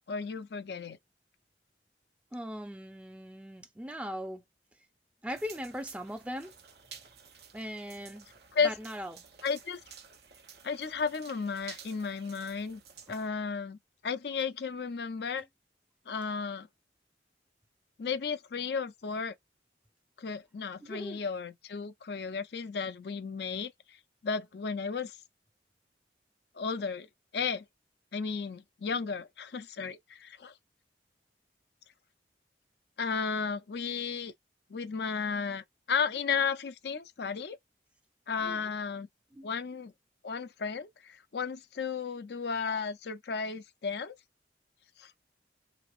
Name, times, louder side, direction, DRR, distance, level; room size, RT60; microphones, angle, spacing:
voice 1, 0.1-1.0 8.5-8.7 9.4-9.8 10.6-12.8 13.1-15.5 16.1-16.7 18.0-19.3 20.2-23.7 24.2-25.2 26.6-27.1 27.3-27.6 28.1-30.5 33.0-34.3 34.7-37.6 38.3-39.1 39.4-39.9 40.2-44.2 45.0-45.1, left 5 dB, 65° left, 0.5 m, -34 dB
voice 2, 2.3-4.4 5.2-6.5 7.5-8.3 8.6-9.2 13.1-13.2 20.8-21.2 38.4-38.7 39.3-39.5, equal, 5° right, 0.5 m, -40 dB
sound 1, 5.3-13.3, right 7 dB, 60° right, 0.7 m, -52 dB
3.2 x 2.9 x 2.4 m
head